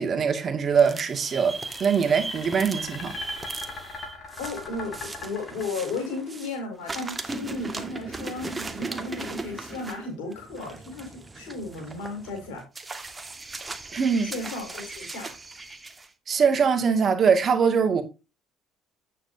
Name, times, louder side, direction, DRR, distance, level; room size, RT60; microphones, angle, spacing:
voice 1, 0.0-3.1 13.9-14.3 16.3-18.0, right 6 dB, 45° right, 2.1 m, -22 dB
sound 1, 0.7-6.6 6.8-16.1, right 3 dB, 25° right, 1.5 m, -38 dB
sound 2, 1.2-6.2, left 4 dB, 55° left, 3.8 m, -40 dB
voice 2, 4.4-12.7 14.2-15.3, left 3 dB, 80° left, 4.5 m, -35 dB
8.8 x 7.6 x 2.8 m
supercardioid pair, 70°, 0 cm